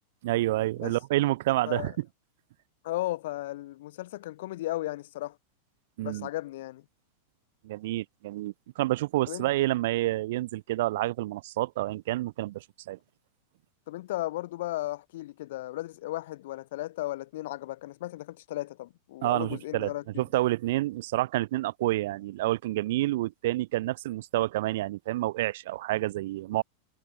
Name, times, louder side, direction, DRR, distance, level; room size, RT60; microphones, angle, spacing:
voice 1, 0.2-2.1 6.0-6.3 7.6-13.0 19.2-26.6, right 17 dB, 65° right, 0.4 m, -29 dB
voice 2, 2.8-5.4 6.0-6.8 9.3-9.5 13.9-20.2, left 16 dB, 65° left, 0.7 m, -35 dB
supercardioid pair, 155°, 0 cm